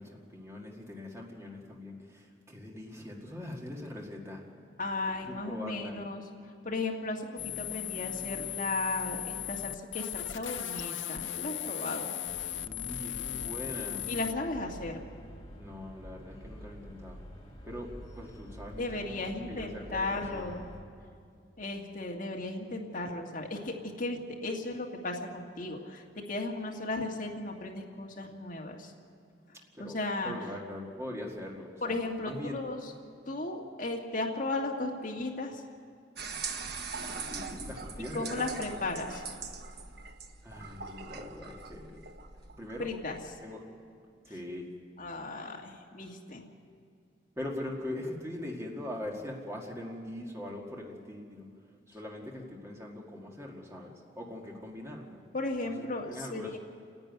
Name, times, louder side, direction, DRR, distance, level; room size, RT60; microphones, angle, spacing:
voice 1, 0.0-4.4 5.3-6.0 12.7-14.1 15.6-17.2 17.6-19.1 19.5-20.5 29.8-30.0 30.2-32.0 32.2-32.6 37.2-38.4 40.4-42.0 42.6-43.0 43.4-43.6 44.3-44.7 47.4-51.5 51.9-55.2 55.8-56.6, left 1 dB, 15° right, -1 dB, 1.9 m, -41 dB
voice 2, 4.8-12.1 14.1-15.0 18.8-20.7 21.6-28.9 29.5-30.3 31.8-32.9 33.3-35.6 38.1-39.2 42.8-43.2 45.0-46.4 55.3-56.6, left 2 dB, 45° left, 0 dB, 1.9 m, -35 dB
sound 1, 7.4-14.3, left 11 dB, 80° left, 0.6 m, -37 dB
sound 2, 12.2-20.8, equal, 25° left, 2.6 m, -48 dB
sound 3, 36.2-43.3, right 4 dB, 60° right, 1.3 m, -41 dB
29.0 x 10.5 x 9.5 m, 2.3 s
head